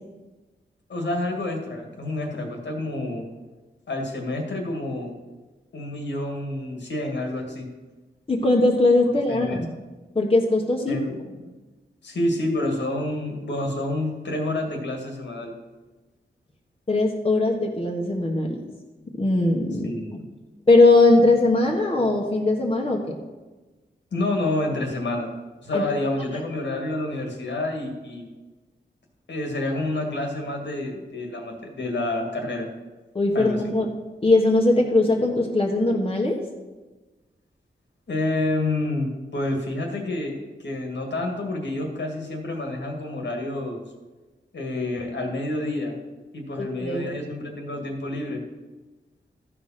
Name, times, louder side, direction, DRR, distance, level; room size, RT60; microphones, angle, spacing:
voice 1, 0.9-3.2 3.9-5.1 5.7-7.7 9.3-9.6 10.9-11.2 12.0-15.5 19.8-20.3 24.1-25.3 25.6-28.3 29.3-32.7 33.3-33.7 38.1-43.8 44.5-46.0 46.3-48.4, left 2 dB, 75° left, 2 dB, 2.0 m, -28 dB
voice 2, 8.3-9.6 10.1-11.0 16.9-18.6 19.2-19.9 20.7-23.2 25.7-25.9 33.1-33.9 34.2-36.4 46.6-47.1, left 2 dB, 30° left, 0 dB, 1.4 m, -20 dB
13.5 x 5.0 x 5.8 m, 1.2 s
wide cardioid pair, 75°, 18 cm